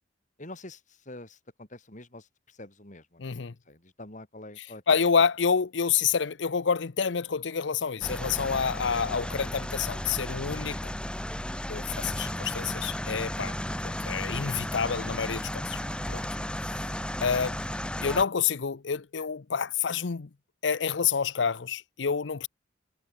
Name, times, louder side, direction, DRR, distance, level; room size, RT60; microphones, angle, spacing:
voice 1, 0.4-4.8 9.4-9.6 16.4-16.5, left 2 dB, 45° left, 5.3 m, -46 dB
voice 2, 3.2-3.5 4.9-10.9 11.7-13.5 13.8-15.8 16.1-16.2 16.7-16.9 17.2-17.6 18.0-20.3 20.6-22.5, left 6 dB, 80° left, 0.7 m, -28 dB
sound 1, 8.0-18.2, left 1 dB, 5° left, 1.6 m, -34 dB
head